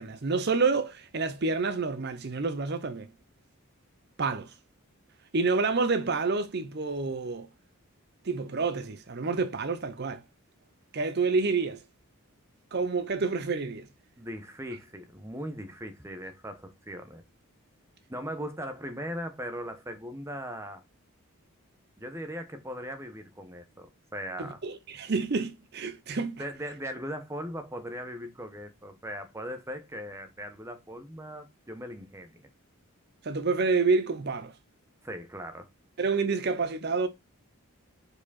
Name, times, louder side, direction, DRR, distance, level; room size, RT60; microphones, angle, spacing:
voice 1, 0.0-3.1 4.2-4.5 5.3-7.5 8.2-10.2 10.9-11.8 12.7-13.9 24.4-26.4 33.2-34.6 36.0-37.1, right 4 dB, 45° right, 0.6 m, -28 dB
voice 2, 14.2-17.2 18.1-20.8 22.0-24.6 26.4-32.5 35.0-35.7, equal, 10° right, 0.9 m, -39 dB
4.9 x 4.8 x 4.1 m
head